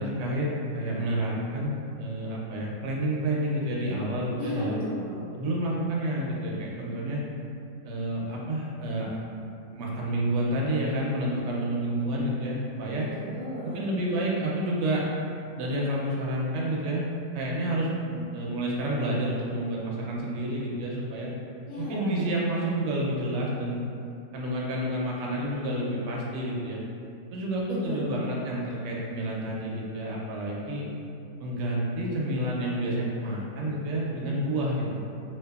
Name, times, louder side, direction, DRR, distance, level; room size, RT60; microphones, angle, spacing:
voice 1, 0.0-1.7 2.0-4.8 5.3-7.2 7.8-9.2 9.7-13.1 13.6-15.1 15.6-21.3 21.8-23.8 24.3-26.8 27.3-30.9 31.4-35.0, right 1 dB, 70° right, -4 dB, 0.8 m, -29 dB
voice 2, 4.4-5.3 13.1-13.8 21.7-22.3 27.7-28.3, left 1 dB, 45° left, -11 dB, 0.8 m, -34 dB
2.6 x 2.6 x 2.3 m, 2.6 s
omnidirectional pair, 1.4 m